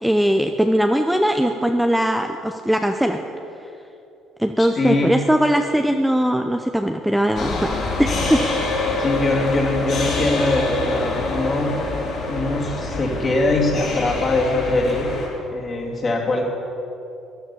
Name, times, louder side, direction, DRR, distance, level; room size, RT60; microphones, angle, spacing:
voice 1, 0.0-3.2 4.4-7.7 8.0-8.4, equal, ahead, 5 dB, 0.6 m, -20 dB
voice 2, 4.6-5.1 9.0-11.8 12.3-15.1 15.5-16.4, left 2 dB, 35° left, -1 dB, 2.7 m, -22 dB
sound 1, 7.4-15.3, left 2 dB, 55° left, 3.5 m, -25 dB
14.0 x 10.0 x 6.9 m, 2.7 s
cardioid pair, 110°, 0 cm